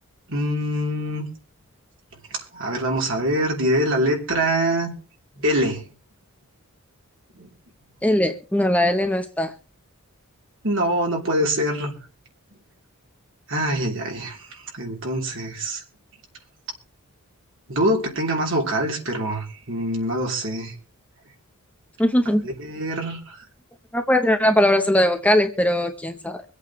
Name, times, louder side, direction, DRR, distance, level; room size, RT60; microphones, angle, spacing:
voice 1, 0.3-1.3 2.3-4.9 5.4-5.8 7.4-7.5 10.6-11.9 13.5-14.4 14.7-15.8 17.7-20.7 22.6-23.4, right 1 dB, 60° right, 3.3 m, -24 dB
voice 2, 8.0-9.5 22.0-22.5 23.9-26.4, left 1 dB, 5° left, 0.8 m, -20 dB
24.5 x 8.4 x 3.1 m
head